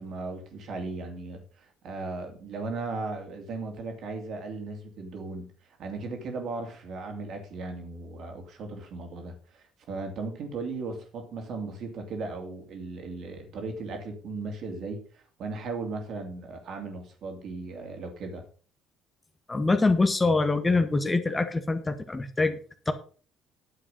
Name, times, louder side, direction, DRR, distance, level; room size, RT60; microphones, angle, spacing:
voice 1, 0.0-5.5 5.8-18.5, right 3 dB, 55° right, 4 dB, 2.7 m, -37 dB
voice 2, 19.5-22.6 22.9-23.0, left 3 dB, 20° left, 9 dB, 1.5 m, -24 dB
10.5 x 7.5 x 5.5 m, 0.41 s
figure-of-eight pair, 55°, 0 cm